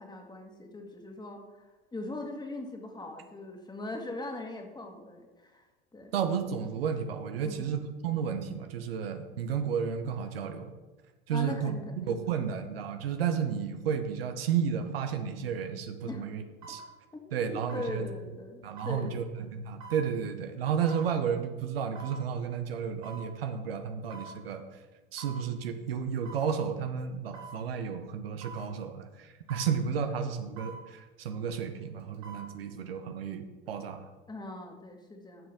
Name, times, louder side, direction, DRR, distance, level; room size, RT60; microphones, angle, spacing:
voice 1, 0.0-6.1 7.4-7.8 11.3-12.6 16.0-16.3 17.1-19.2 34.3-35.5, left 2 dB, 15° left, 3 dB, 1.8 m, -41 dB
voice 2, 6.1-10.7 11.3-16.4 16.7-16.8 17.3-18.1 18.6-24.6 25.1-34.1, right 7 dB, 80° right, 7 dB, 0.9 m, -32 dB
sound 1, 15.5-15.6 16.6-16.9 17.7-17.9 18.8-19.0 19.8-20.0 20.9-21.1 21.9-22.2 23.0-23.3 24.1-24.4 25.2-25.4 26.2-26.5 27.3-27.6 28.4-28.7 29.5-29.8 30.6-30.8 32.0-32.5 32.9-33.0, right 4 dB, 60° right, 2.8 m, -45 dB
12.5 x 6.5 x 3.6 m, 1.2 s
hypercardioid pair, 80°, 29 cm